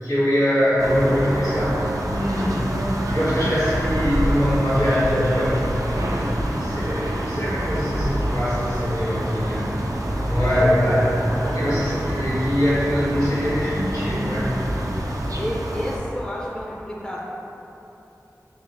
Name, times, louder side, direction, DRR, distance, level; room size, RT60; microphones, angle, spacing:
voice 1, 0.0-2.8 3.1-5.6 6.0-9.7 10.3-14.6, equal, 75° left, -10 dB, 1.5 m, -23 dB
sound 1, 0.8-16.0, right 1 dB, 75° right, 0.4 m, -26 dB
voice 2, 10.3-10.7 11.4-11.6 15.4-17.2, equal, 15° left, -3 dB, 0.4 m, -31 dB
3.8 x 2.4 x 3.7 m, 3.0 s
wide cardioid pair, 50°, 6 cm